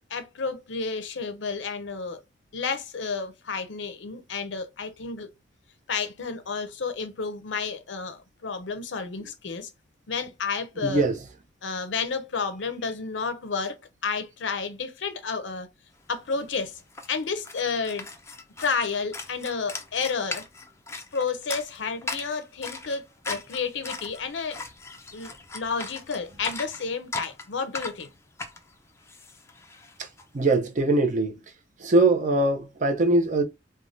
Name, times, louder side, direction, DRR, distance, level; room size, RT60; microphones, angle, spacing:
voice 1, 0.1-2.2 2.5-5.3 5.9-9.7 10.1-11.0 11.6-13.8 14.0-15.7 16.1-16.8 17.1-18.1 18.6-20.4 21.1-24.6 25.1-28.1, left 5 dB, 90° left, 0.6 m, -31 dB
voice 2, 10.8-11.2 30.0-30.1 30.3-31.4 31.8-33.4, right 2 dB, 45° right, 0.6 m, -22 dB
sound 1, 16.1-16.2 16.4-30.2, left 3 dB, 15° left, 0.4 m, -39 dB
3.2 x 2.2 x 2.5 m
head